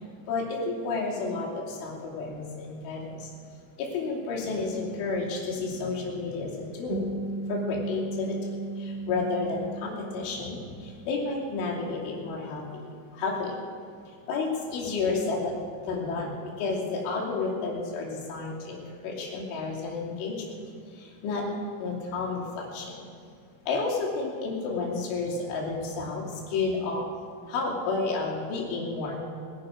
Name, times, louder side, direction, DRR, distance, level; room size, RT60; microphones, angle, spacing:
voice 1, 0.3-3.3 3.8-7.1 7.5-8.4 8.8-12.8 13.1-13.6 14.3-15.5 15.9-20.6 21.0-21.5 21.8-23.0 23.7-27.1 27.5-29.2, left 3 dB, 80° left, -3 dB, 5.2 m, -31 dB
sound 1, 6.9-11.6, right 3 dB, 85° right, 3.4 m, -36 dB
23.0 x 11.5 x 5.1 m, 2.2 s
omnidirectional pair, 5.5 m